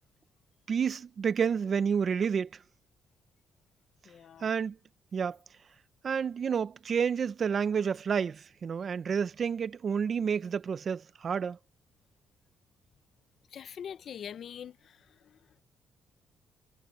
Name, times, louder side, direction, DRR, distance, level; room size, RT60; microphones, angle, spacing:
voice 1, 0.7-2.5 4.4-4.8 5.1-5.4 6.0-11.6, right 6 dB, 50° right, 0.8 m, -29 dB
voice 2, 4.0-4.5 13.5-15.4, left 8 dB, 60° left, 0.8 m, -44 dB
cardioid pair, 90°, 0 cm